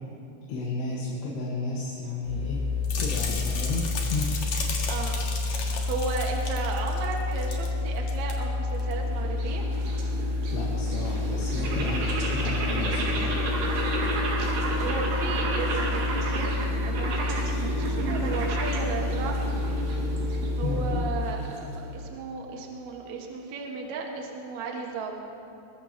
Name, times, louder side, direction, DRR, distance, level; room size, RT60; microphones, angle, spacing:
voice 1, 0.5-2.6 3.0-4.3 10.5-13.4 20.6-21.0, left 3 dB, 75° left, -5 dB, 3.6 m, -32 dB
sound 1, 2.2-21.2, left 3 dB, 30° left, 3.6 m, -29 dB
sound 2, 2.8-7.7 8.0-8.3 8.8-8.9, left 4 dB, 55° left, 2.3 m, -35 dB
voice 2, 5.9-9.6 14.8-19.5 20.6-25.2, right 4 dB, 55° right, 0 dB, 2.4 m, -34 dB
sound 3, 8.6-22.0, right 2 dB, 80° right, 4.1 m, -32 dB
22.5 x 21.0 x 3.0 m, 2.8 s
omnidirectional pair, 5.0 m